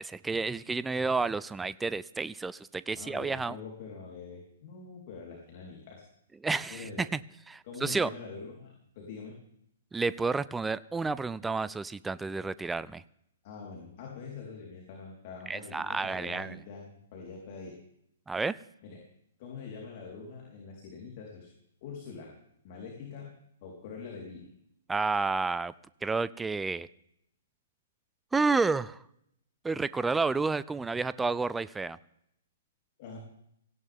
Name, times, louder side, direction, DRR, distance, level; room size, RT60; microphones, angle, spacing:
voice 1, 0.0-3.6 6.4-7.2 7.5-8.1 9.9-13.0 15.5-16.6 18.3-18.6 24.9-25.7 26.0-26.9 28.3-29.0 29.6-32.0, right 4 dB, 10° right, 17 dB, 0.4 m, -30 dB
voice 2, 2.9-6.0 6.7-7.1 7.6-9.4 13.4-17.7 18.8-19.0 19.4-21.5 21.8-22.3 22.6-23.3 23.6-24.5 33.0-33.2, left 5 dB, 45° left, -1 dB, 4.2 m, -44 dB
18.0 x 16.0 x 3.7 m, 0.75 s
figure-of-eight pair, 120°, 0 cm